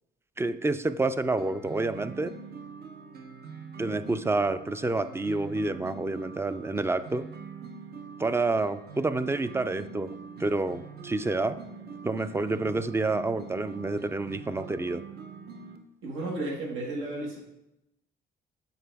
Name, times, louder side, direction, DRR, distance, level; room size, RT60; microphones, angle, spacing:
voice 1, 0.4-2.3 3.8-7.3 8.2-10.1 10.4-11.6 12.0-15.0, right 2 dB, 15° right, 13 dB, 0.3 m, -28 dB
sound 1, 1.4-15.8, right 6 dB, 55° right, 0.8 m, -44 dB
voice 2, 16.0-17.4, right 2 dB, 80° right, -2 dB, 1.6 m, -33 dB
7.9 x 4.6 x 3.4 m, 0.89 s
cardioid pair, 90°, 20 cm